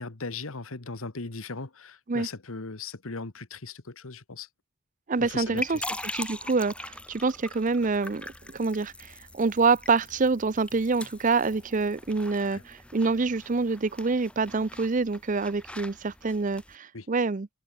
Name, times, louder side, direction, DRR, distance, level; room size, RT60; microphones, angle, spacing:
voice 1, 0.0-4.5 5.2-5.8 12.5-12.6 16.9-17.1, left 4 dB, 75° left, 1.5 m, -38 dB
voice 2, 5.1-5.8 6.1-17.5, right 4 dB, 40° right, 0.5 m, -26 dB
sound 1, 5.2-16.8, left 1 dB, 5° left, 2.8 m, -42 dB
head